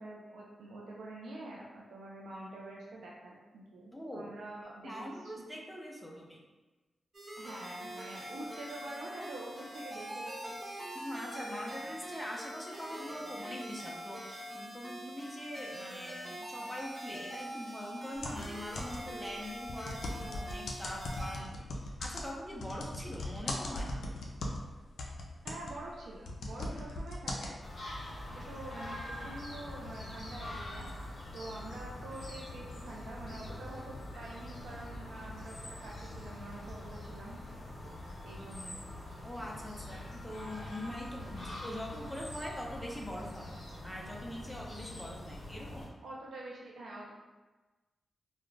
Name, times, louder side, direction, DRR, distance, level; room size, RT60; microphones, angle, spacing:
voice 1, 0.0-5.1 5.4-5.5 7.4-10.6 25.4-27.5 28.3-37.6 38.2-38.8 46.0-47.1, right 2 dB, 85° right, -3 dB, 0.3 m, -46 dB
voice 2, 3.9-4.3 4.8-6.4 8.3-8.5 10.9-24.1 26.6-26.7 39.2-43.5 43.8-45.9, left 1 dB, 5° left, -3 dB, 0.5 m, -43 dB
sound 1, 7.1-21.4, right 1 dB, 55° right, 1.0 m, -44 dB
sound 2, 18.2-19.2 19.6-24.7 25.0-27.5, left 1 dB, 90° left, 0.3 m, -39 dB
sound 3, 27.6-45.9, left 1 dB, 55° left, 0.8 m, -44 dB
2.4 x 2.1 x 3.1 m, 1.2 s
cardioid pair, 80°, 0 cm